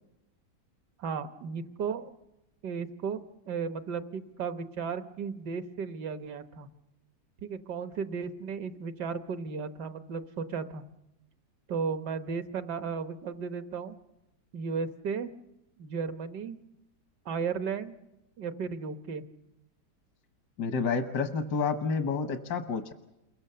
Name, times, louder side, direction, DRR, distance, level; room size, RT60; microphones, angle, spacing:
voice 1, 1.0-2.1 2.6-3.2 3.5-6.7 7.4-10.8 11.7-14.0 14.5-15.3 15.8-16.6 17.3-17.9 18.4-19.2, right 5 dB, 80° right, 9 dB, 1.8 m, -34 dB
voice 2, 20.6-22.9, left 5 dB, 80° left, 6 dB, 1.7 m, -29 dB
29.0 x 23.0 x 6.8 m, 0.92 s
omnidirectional pair, 1.8 m